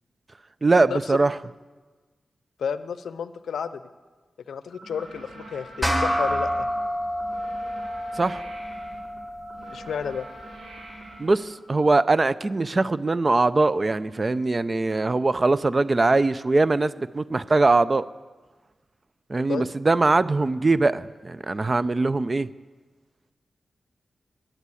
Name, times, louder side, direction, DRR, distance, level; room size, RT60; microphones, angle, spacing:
voice 1, 0.6-1.4 8.2-8.4 11.2-18.1 19.3-22.5, right 3 dB, 40° right, 16 dB, 0.4 m, -21 dB
voice 2, 2.6-3.8 4.5-6.7 9.7-10.3 19.5-19.7, left 7 dB, 85° left, 14 dB, 0.5 m, -31 dB
sound 1, 4.7-11.9, right 2 dB, 70° right, 3.4 m, -44 dB
sound 2, 5.8-10.6, equal, 5° right, 1.8 m, -29 dB
11.0 x 10.0 x 8.4 m, 1.3 s
cardioid pair, 50°, 0 cm